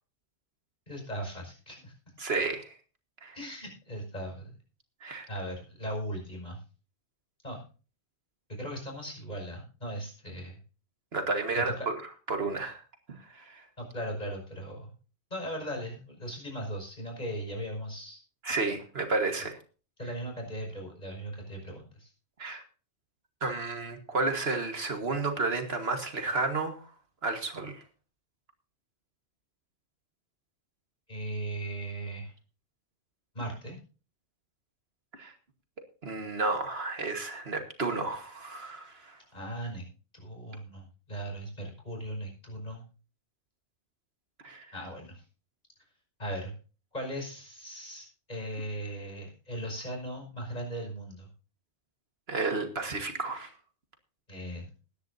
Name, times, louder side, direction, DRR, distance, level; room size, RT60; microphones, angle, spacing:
voice 1, 0.9-1.9 3.3-4.6 5.3-6.6 7.4-7.6 8.5-10.6 11.6-11.9 13.8-14.9 15.3-18.2 20.0-22.1 31.1-32.3 33.3-33.8 39.3-39.9 40.1-42.8 44.7-45.2 46.2-46.5 46.9-51.3 54.3-54.7, right 1 dB, 40° left, 1 dB, 5.8 m, -38 dB
voice 2, 2.2-2.7 3.2-3.4 5.0-5.3 11.1-11.7 12.3-12.8 13.1-13.6 18.4-19.6 22.4-22.6 23.4-26.9 27.2-27.8 35.1-35.3 36.0-39.2 44.4-44.7 52.3-53.5, right 3 dB, 70° right, 6 dB, 1.8 m, -32 dB
21.0 x 10.5 x 2.7 m, 0.36 s
omnidirectional pair, 1.1 m